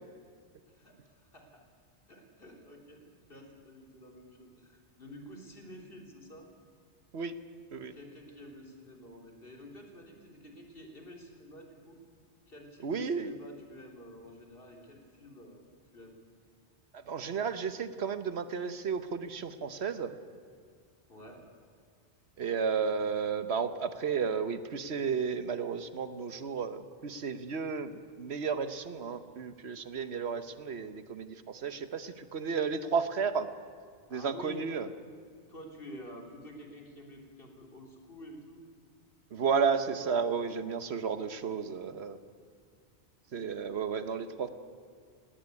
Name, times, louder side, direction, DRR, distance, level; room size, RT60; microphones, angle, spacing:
voice 1, 0.7-1.6 2.1-6.5 7.9-12.0 12.5-15.6 15.9-16.1 21.1-21.4 34.1-34.6 35.5-38.6, left 1 dB, 55° left, 2 dB, 3.3 m, -49 dB
voice 2, 12.8-13.3 16.9-20.1 22.4-27.9 28.2-33.5 34.1-34.9 39.3-42.2 43.3-44.5, right 6 dB, 70° right, 11 dB, 1.2 m, -33 dB
18.0 x 17.5 x 9.7 m, 2.1 s
omnidirectional pair, 1.1 m